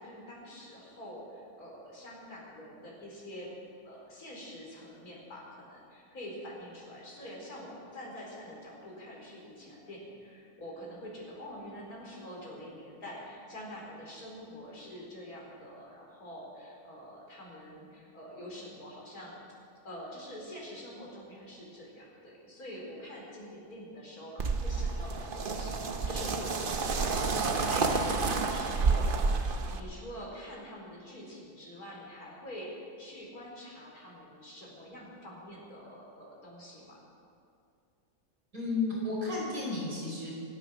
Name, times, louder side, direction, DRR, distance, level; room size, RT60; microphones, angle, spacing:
voice 1, 0.0-3.5 3.8-29.1 29.7-37.0, equal, 90° left, -4 dB, 5.0 m, -46 dB
sound 1, 24.4-29.8, right 4 dB, 40° right, 1.0 m, -29 dB
voice 2, 38.5-40.3, left 3 dB, 70° right, -5 dB, 5.9 m, -32 dB
23.5 x 9.4 x 6.3 m, 2.4 s
omnidirectional pair, 1.5 m